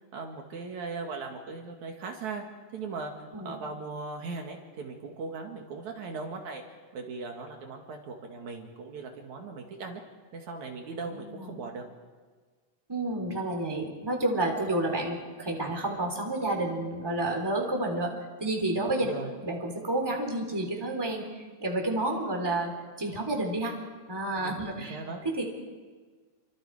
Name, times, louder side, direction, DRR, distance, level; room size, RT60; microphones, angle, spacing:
voice 1, 0.1-2.4 2.7-3.1 3.4-6.6 6.9-10.0 10.3-11.8 17.2-17.3 19.0-19.3 24.4-25.2, right 4 dB, 65° right, 2 dB, 3.2 m, -38 dB
voice 2, 11.1-11.6 12.9-18.1 18.4-19.1 19.4-23.8 24.1-25.4, right 2 dB, 5° right, 0 dB, 3.4 m, -30 dB
29.5 x 24.5 x 4.9 m, 1.5 s
omnidirectional pair, 3.6 m